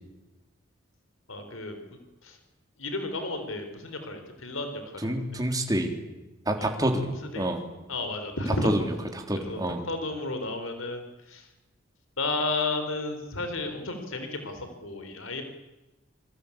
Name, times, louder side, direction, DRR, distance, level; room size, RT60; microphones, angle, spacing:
voice 1, 1.3-1.8 2.2-2.4 2.8-5.1 6.6-6.7 7.0-7.4 7.9-8.9 9.4-9.6 9.8-11.0 11.3-11.5 12.2-15.4, left 2 dB, 85° left, 7 dB, 4.1 m, -32 dB
voice 2, 5.0-5.9 6.5-7.6 8.6-9.9, right 1 dB, 20° right, 4 dB, 3.5 m, -28 dB
27.0 x 24.0 x 8.7 m, 1.1 s
head